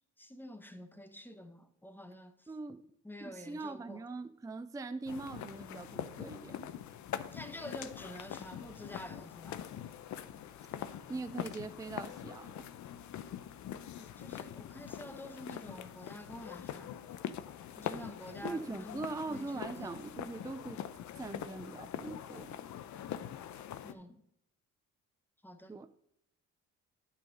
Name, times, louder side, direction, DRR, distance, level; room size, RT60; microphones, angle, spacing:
voice 1, 0.2-2.5 3.0-4.0 7.3-9.6 13.9-17.1 17.8-20.0 23.8-24.2 25.4-25.8, left 1 dB, 5° left, 1.1 m, -48 dB
voice 2, 2.5-2.9 3.2-6.7 11.1-12.7 18.4-20.9 21.2-22.6 25.7-25.9, right 3 dB, 10° right, 0.5 m, -42 dB
sound 1, 5.1-23.9, left 10 dB, 70° left, 0.7 m, -43 dB
8.9 x 5.8 x 5.3 m
cardioid pair, 90°, 30 cm